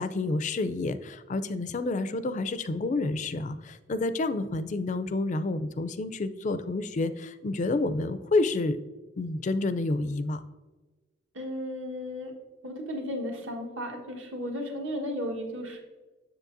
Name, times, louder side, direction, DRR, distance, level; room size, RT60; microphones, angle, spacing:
voice 1, 0.0-8.8 9.2-10.4, left 2 dB, 35° left, 12 dB, 0.3 m, -29 dB
voice 2, 11.3-12.3 12.6-15.8, equal, 75° right, 1 dB, 1.4 m, -34 dB
7.4 x 7.1 x 2.6 m, 1.2 s
head